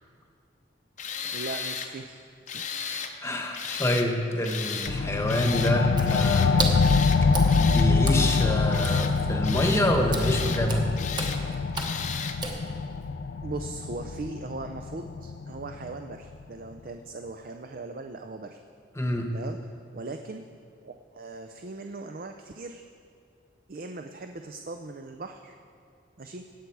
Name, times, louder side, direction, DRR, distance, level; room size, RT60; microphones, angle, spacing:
Tools, 1.0-1.9 2.5-3.1 3.5-4.1 4.4-4.9 5.3-5.8 6.1-6.5 6.8-7.2 7.5-9.1 9.4-9.9 10.2-10.6 11.0-11.4 11.8-12.4, left 7 dB, 45° left, 0.7 m, -35 dB
voice 1, 1.3-2.2 2.5-2.9 13.4-18.6 19.3-19.6 19.9-20.4 20.8-22.8 23.7-25.6 26.2-26.4, right 3 dB, 50° right, 6 dB, 0.5 m, -39 dB
voice 2, 3.2-6.8 7.5-10.9 19.0-19.3, left 1 dB, 15° left, 3 dB, 1.0 m, -27 dB
sound 1, 4.9-15.9, left 4 dB, 80° left, 0.4 m, -25 dB
Water / Splash splatter, 5.9-13.1, right 2 dB, 25° right, 1.0 m, -36 dB
17.0 x 7.9 x 4.7 m, 2.3 s
head